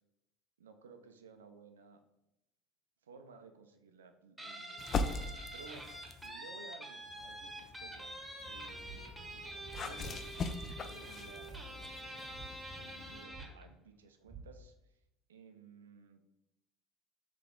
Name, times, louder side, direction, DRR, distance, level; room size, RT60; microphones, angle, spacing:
voice 1, 0.6-2.0 3.0-4.9 5.5-10.4 10.8-15.0 15.3-16.2, right 4 dB, 85° right, 7 dB, 0.4 m, -56 dB
Guitar, 4.4-13.6, right 1 dB, 10° right, 1.1 m, -47 dB
sound 1, 4.8-6.4 7.0-13.2, left 4 dB, 40° left, 0.4 m, -42 dB
sound 2, 8.8-9.3 9.7-10.1 10.6-11.0 11.4-11.9 12.3-12.9 13.3-13.7 14.3-14.4, right 7 dB, 25° right, 0.8 m, -50 dB
3.6 x 3.3 x 3.7 m, 0.86 s
hypercardioid pair, 70°, 0 cm